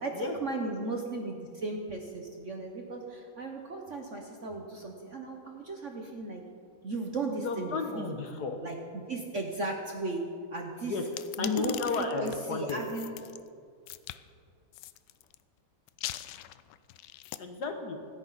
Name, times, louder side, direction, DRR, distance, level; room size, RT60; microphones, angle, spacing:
voice 1, 0.0-6.4 6.8-8.1 8.6-10.2 10.5-10.9 11.4-11.7 12.2-13.1, right 2 dB, 45° right, 2 dB, 1.1 m, -36 dB
voice 2, 7.4-8.6 10.9-11.0 11.4-12.8 17.4-18.0, left 4 dB, 55° left, 5 dB, 1.5 m, -33 dB
sound 1, 11.1-13.4 13.9-14.2 14.7-15.4 15.9-17.4, left 13 dB, 75° left, 1.0 m, -41 dB
25.5 x 9.7 x 4.1 m, 2.3 s
omnidirectional pair, 2.3 m